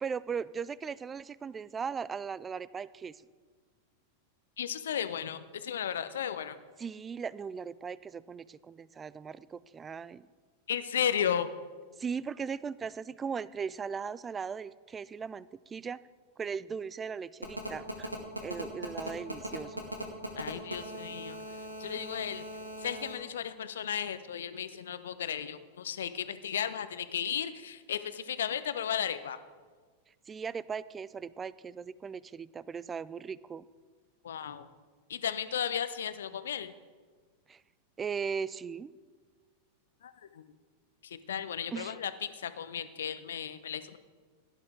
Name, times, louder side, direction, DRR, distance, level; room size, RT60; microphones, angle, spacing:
voice 1, 0.0-3.2 6.8-10.2 12.0-16.0 16.4-18.1 18.4-19.9 30.3-33.6 37.5-37.6 38.0-38.9 41.7-41.9, right 6 dB, 20° right, 19 dB, 0.3 m, -38 dB
voice 2, 4.6-6.6 10.7-11.5 20.4-22.5 22.8-29.4 34.2-34.7 35.1-36.7 40.0-40.4 41.0-44.0, left 9 dB, 65° left, 13 dB, 0.7 m, -35 dB
Telephone, 17.4-23.1, right 1 dB, 85° right, 1.8 m, -39 dB
16.5 x 11.0 x 3.8 m, 1.5 s
figure-of-eight pair, 90°, 0 cm